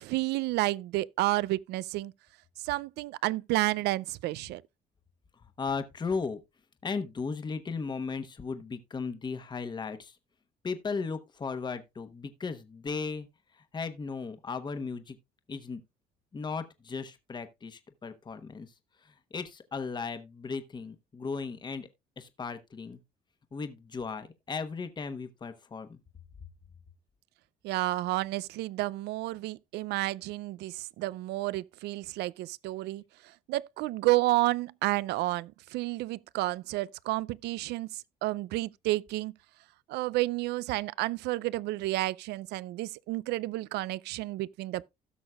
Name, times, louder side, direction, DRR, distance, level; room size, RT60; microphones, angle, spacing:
voice 1, 0.0-2.1 2.6-4.6 27.6-39.3 39.9-44.9, right 18 dB, 80° right, 0.4 m, -31 dB
voice 2, 5.4-6.4 6.8-10.2 10.6-13.3 13.5-15.2 15.5-15.8 16.3-18.7 19.0-21.9 22.2-23.0 23.5-26.0, left 4 dB, 25° left, 1.0 m, -36 dB
16.5 x 6.3 x 2.3 m
cardioid pair, 110°, 17 cm